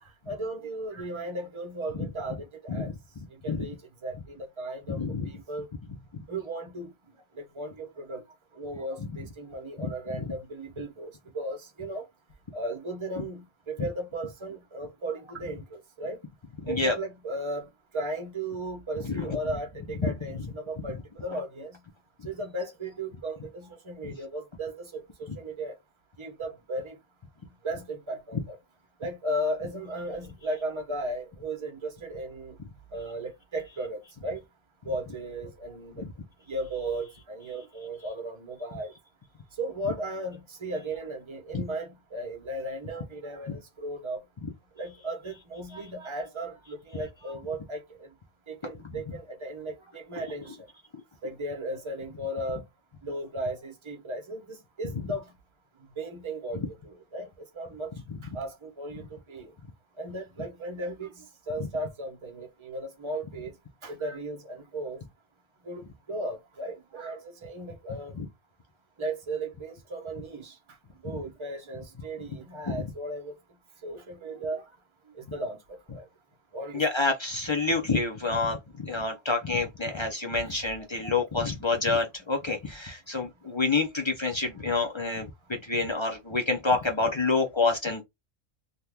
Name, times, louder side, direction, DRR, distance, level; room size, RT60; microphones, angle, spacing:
voice 1, 0.3-2.9 3.4-3.8 4.0-5.7 6.3-6.9 7.5-8.2 8.5-12.1 12.5-16.2 16.7-21.8 22.2-25.8 26.2-27.0 27.6-28.6 29.0-32.5 32.9-34.4 34.8-36.0 36.5-38.9 39.6-44.2 44.8-48.1 48.5-50.7 51.2-52.6 53.0-55.3 56.0-57.3 57.5-57.9 58.3-59.5 60.0-63.5 63.8-65.0 65.6-68.1 69.0-70.6 71.0-73.3 73.8-74.6 75.1-75.6 75.9-76.0 76.5-76.8 80.4-80.7, right 1 dB, 30° right, 0.8 m, -36 dB
voice 2, 16.6-16.9 19.0-19.4 20.0-20.1 24.0-24.1 36.0-36.1 41.5-41.6 43.5-43.6 68.2-68.3 72.7-72.8 76.7-85.3 85.6-88.0, left 3 dB, 35° left, 0.5 m, -28 dB
2.8 x 2.4 x 3.4 m
omnidirectional pair, 1.3 m